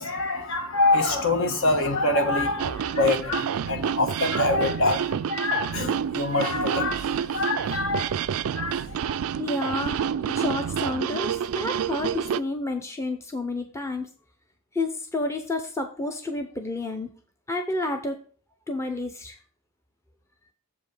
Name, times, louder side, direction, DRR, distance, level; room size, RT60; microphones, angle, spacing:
voice 1, 0.0-8.1 8.4-9.2, left 2 dB, 60° left, 1.4 m, -25 dB
sound 1, 2.6-12.4, right 8 dB, 75° right, 0.3 m, -29 dB
voice 2, 9.4-14.1 14.7-17.1 17.5-18.2 18.7-19.4, left 2 dB, 15° left, 0.7 m, -30 dB
7.4 x 5.3 x 4.9 m
head